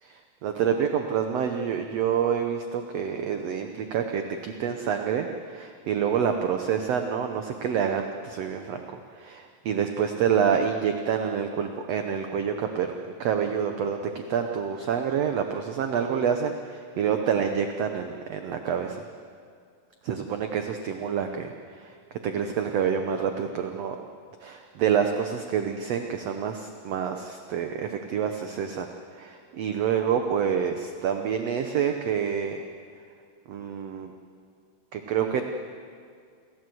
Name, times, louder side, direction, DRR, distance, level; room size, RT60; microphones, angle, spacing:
voice 1, 0.0-8.8 9.1-19.0 20.0-21.5 21.8-24.0 24.4-28.9 29.1-32.6 33.5-34.1 34.9-35.4, right 7 dB, 70° right, 5 dB, 1.6 m, -27 dB
28.0 x 14.5 x 7.8 m, 2.2 s
omnidirectional pair, 4.0 m